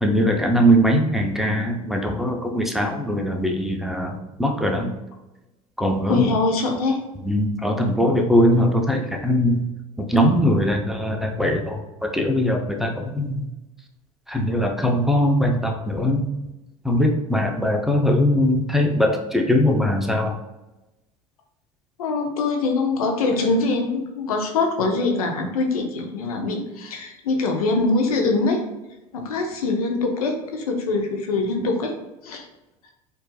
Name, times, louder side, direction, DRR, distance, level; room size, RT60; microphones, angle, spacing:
voice 1, 0.0-4.9 5.8-6.2 7.2-9.7 10.0-13.5 14.3-16.3 16.8-20.4, equal, ahead, 1 dB, 0.6 m, -21 dB
voice 2, 6.1-7.0 22.0-28.6 29.1-31.9 32.2-32.5, left 3 dB, 85° left, 3 dB, 0.7 m, -23 dB
4.5 x 2.6 x 2.2 m, 1.0 s
hypercardioid pair, 75°, 18 cm